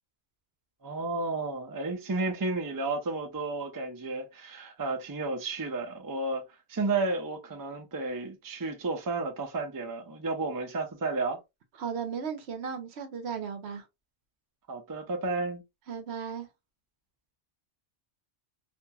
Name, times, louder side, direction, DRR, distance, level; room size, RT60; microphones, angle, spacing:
voice 1, 0.8-6.4 6.7-11.4 14.7-15.6, right 3 dB, 25° right, 0.4 m, -32 dB
voice 2, 11.8-13.8 15.9-16.5, right 6 dB, 70° right, 0.9 m, -35 dB
2.8 x 2.5 x 2.2 m
omnidirectional pair, 1.2 m